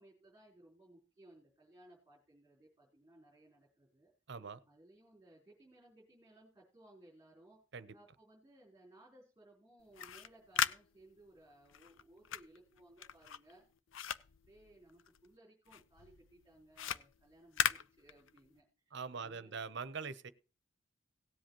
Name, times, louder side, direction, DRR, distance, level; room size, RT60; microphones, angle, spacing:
voice 1, 0.0-4.1 4.7-7.6 7.9-13.6 14.4-19.5, right 1 dB, 15° right, 4.0 m, -62 dB
voice 2, 4.3-4.6 7.7-7.9 18.9-20.3, right 5 dB, 65° right, 0.8 m, -43 dB
sound 1, 9.8-15.3 15.7-18.6, left 8 dB, 80° left, 0.6 m, -39 dB
18.0 x 7.8 x 3.0 m
head